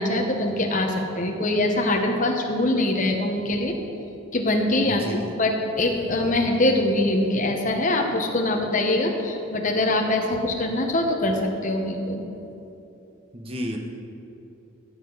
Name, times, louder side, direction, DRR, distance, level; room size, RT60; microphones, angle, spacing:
voice 1, 0.0-3.8 4.3-12.2, left 1 dB, 35° left, 2 dB, 1.0 m, -23 dB
voice 2, 4.9-5.3 13.3-13.8, equal, 25° right, 2 dB, 0.9 m, -32 dB
14.5 x 7.5 x 4.0 m, 2.9 s
head